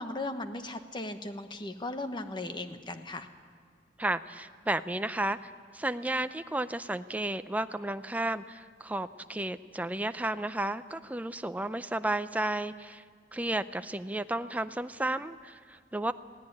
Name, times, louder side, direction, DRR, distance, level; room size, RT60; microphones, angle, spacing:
voice 1, 0.0-3.3, left 2 dB, 25° left, 8 dB, 1.1 m, -37 dB
voice 2, 4.0-13.0 13.3-16.1, right 1 dB, 10° right, 11 dB, 0.5 m, -33 dB
17.0 x 17.0 x 9.8 m, 2.1 s
head